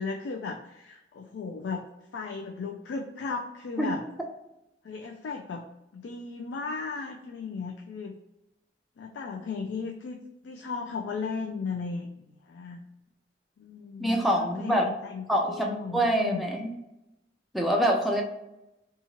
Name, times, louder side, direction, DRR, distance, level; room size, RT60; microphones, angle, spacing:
voice 1, 0.0-4.0 4.8-5.7 5.9-8.1 9.0-10.2 10.4-12.8 13.6-16.4, left 4 dB, 90° left, 2 dB, 0.3 m, -36 dB
voice 2, 14.0-14.9 15.3-16.7 17.5-18.2, equal, ahead, 0 dB, 0.4 m, -25 dB
2.8 x 2.3 x 2.8 m, 0.91 s
head